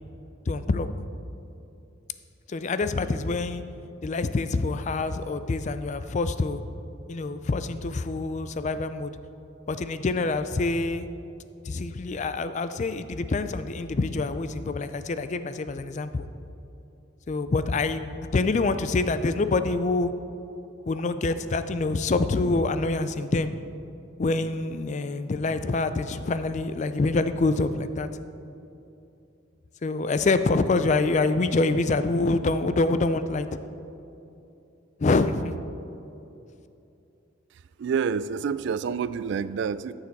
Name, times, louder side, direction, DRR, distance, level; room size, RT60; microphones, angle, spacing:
voice 1, 0.5-0.9 2.5-3.6 4.0-6.6 7.1-9.1 9.7-11.1 11.6-16.3 17.3-20.1 20.9-23.5 24.2-28.1 29.8-33.5 35.0-35.5, left 3 dB, 35° left, 11 dB, 0.4 m, -26 dB
voice 2, 37.8-39.9, right 6 dB, 60° right, 16 dB, 0.3 m, -28 dB
14.0 x 6.6 x 4.1 m, 2.8 s
head